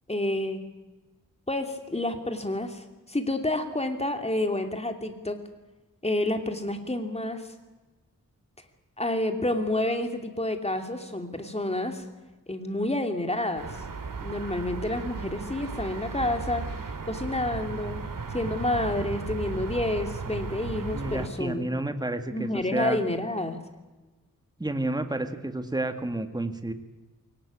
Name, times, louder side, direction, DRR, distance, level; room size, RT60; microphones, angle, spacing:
voice 1, 0.1-0.6 1.5-5.4 6.0-7.5 9.0-12.0 12.5-13.8 14.2-16.6 17.1-18.0 18.3-21.7 22.3-23.6, left 1 dB, 20° left, 6 dB, 2.9 m, -29 dB
sound 1, 13.6-21.3, right 4 dB, 85° right, 2.5 m, -35 dB
voice 2, 20.9-23.0 24.6-26.7, right 1 dB, 10° right, 8 dB, 1.8 m, -30 dB
22.0 x 18.5 x 8.6 m, 1.2 s
wide cardioid pair, 80°, 32 cm